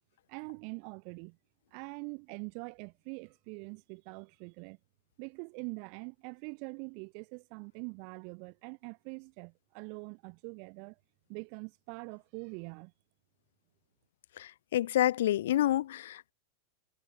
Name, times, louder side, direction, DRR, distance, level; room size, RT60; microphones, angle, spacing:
voice 1, 0.3-1.4 1.7-4.8 5.2-11.0 11.3-12.9, right 40 dB or more, 45° right, 3.1 m, -44 dB
voice 2, 14.4-16.3, left 13 dB, 60° left, 1.0 m, -28 dB
figure-of-eight pair, 90°, 0 cm